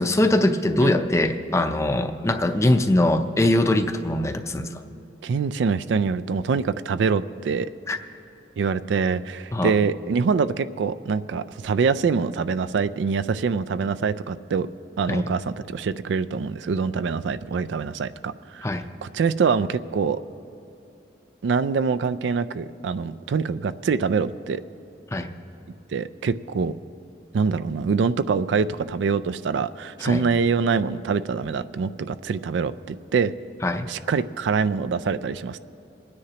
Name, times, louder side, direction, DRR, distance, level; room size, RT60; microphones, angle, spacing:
voice 1, 0.0-4.7 7.9-8.0 9.5-9.7 15.1-15.2 18.6-18.8 25.1-25.3 30.0-30.2 33.6-33.9, left 1 dB, 15° left, 7 dB, 0.5 m, -22 dB
voice 2, 5.2-7.7 8.6-14.7 15.0-18.7 19.0-20.2 21.4-24.6 25.9-26.7 27.3-33.3 33.9-35.6, right 5 dB, 80° right, 13 dB, 0.4 m, -24 dB
28.0 x 9.7 x 2.9 m, 2.9 s
head